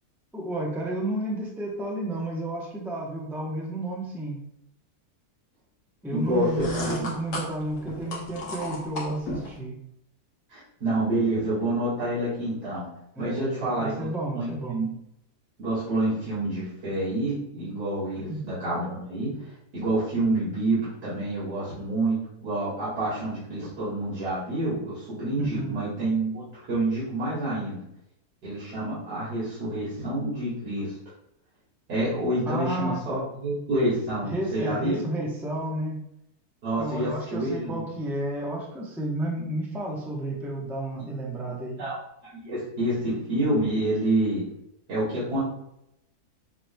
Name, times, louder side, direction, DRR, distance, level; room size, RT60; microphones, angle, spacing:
voice 1, 0.3-4.4 6.0-9.8 13.2-14.8 18.2-18.4 25.4-25.8 32.5-33.0 34.2-36.0 36.8-41.8, right 1 dB, ahead, -2 dB, 0.5 m, -31 dB
voice 2, 6.1-7.1 10.5-12.9 13.2-14.1 14.3-14.9 15.6-27.8 28.4-30.9 31.9-35.0 36.6-37.8 41.8-41.9 42.3-44.4 44.9-45.4, right 1 dB, 80° right, -11 dB, 2.5 m, -28 dB
sound 1, 6.3-9.6, left 1 dB, 60° left, 1.5 m, -35 dB
7.4 x 3.1 x 2.2 m, 0.80 s
omnidirectional pair, 1.7 m